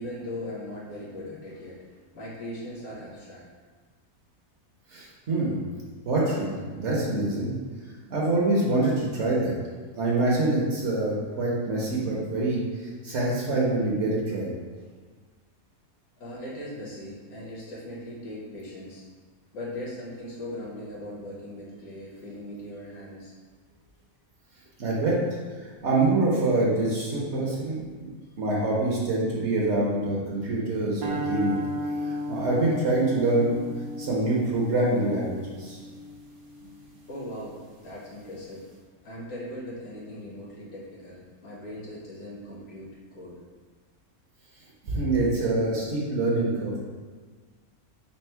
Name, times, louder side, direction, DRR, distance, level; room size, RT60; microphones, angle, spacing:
voice 1, 0.0-1.8 2.1-3.4 14.7-14.8 16.2-19.0 19.5-23.3 37.1-38.7 39.0-43.3, left 1 dB, 80° left, -6 dB, 1.6 m, -39 dB
voice 2, 4.9-5.6 6.0-7.5 8.1-9.5 9.9-14.5 24.8-25.2 25.6-28.1 28.4-31.6 32.3-33.6 34.0-35.8 44.8-46.8, right 2 dB, 55° right, -4 dB, 0.9 m, -25 dB
sound 1, 31.0-37.3, equal, 75° right, 1.3 m, -35 dB
4.2 x 2.0 x 4.3 m, 1.5 s
omnidirectional pair, 1.5 m